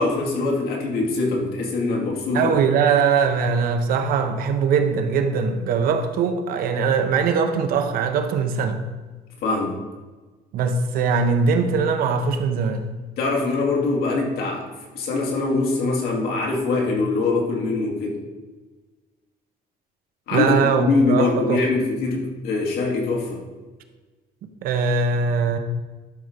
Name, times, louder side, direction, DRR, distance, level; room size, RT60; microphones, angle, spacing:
voice 1, 0.0-2.6 9.4-9.8 13.2-14.7 14.9-18.2 20.3-23.4, left 3 dB, 70° left, 2.4 m, -23 dB
voice 2, 2.3-8.8 10.5-12.9 20.3-21.6 24.6-25.6, right 5 dB, 60° right, 0.9 m, -21 dB
12.0 x 4.2 x 5.1 m
cardioid pair, 180°, 17 cm